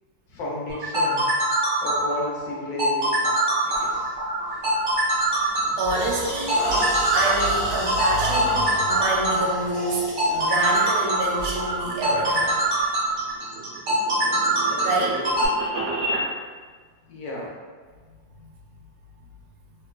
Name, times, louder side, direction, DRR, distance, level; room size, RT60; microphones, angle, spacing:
voice 1, 0.3-1.3 1.8-3.3 3.6-4.2 14.7-15.4 17.1-17.5, left 1 dB, 65° left, -4 dB, 1.0 m, -33 dB
sound 1, 0.7-15.5, right 1 dB, 45° right, 0.6 m, -23 dB
sound 2, 3.7-4.0 4.5-4.8 5.2-13.3, right 1 dB, 45° left, 0.6 m, -32 dB
voice 2, 5.8-6.7 7.1-12.6 14.8-15.2 18.3-18.4, right 2 dB, 70° right, -2 dB, 0.9 m, -27 dB
sound 3, 13.2-16.3, right 1 dB, 90° right, 0.6 m, -31 dB
3.0 x 2.1 x 2.3 m, 1.5 s
omnidirectional pair, 2.0 m